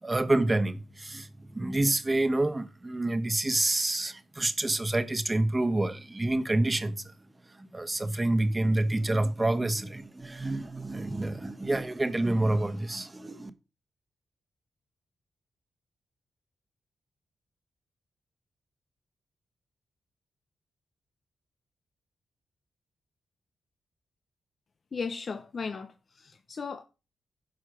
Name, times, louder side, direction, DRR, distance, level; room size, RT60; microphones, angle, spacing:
voice 1, 0.0-7.1 7.5-13.5, right 2 dB, 25° right, 1.3 m, -28 dB
voice 2, 24.9-26.8, left 5 dB, 55° left, 0.8 m, -36 dB
11.5 x 4.7 x 6.2 m
cardioid pair, 55°, 0 cm